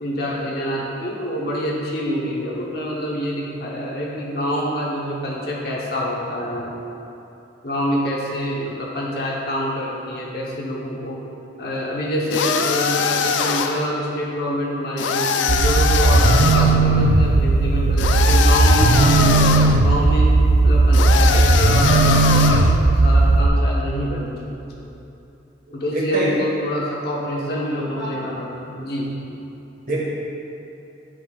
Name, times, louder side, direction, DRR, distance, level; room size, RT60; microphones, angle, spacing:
voice 1, 0.0-6.8 7.6-11.2 11.6-20.3 20.6-24.5 25.7-29.1, equal, 55° left, -4 dB, 1.1 m, -26 dB
sound 1, 12.3-13.9 15.0-16.8 18.0-19.8 20.9-22.8, left 6 dB, 75° left, 0.4 m, -22 dB
sound 2, 15.5-23.5, right 2 dB, 75° right, 0.5 m, -16 dB
voice 2, 25.7-26.4 27.7-28.2 29.9-30.0, right 1 dB, 45° right, -5 dB, 1.5 m, -27 dB
8.8 x 6.8 x 2.4 m, 2.8 s
head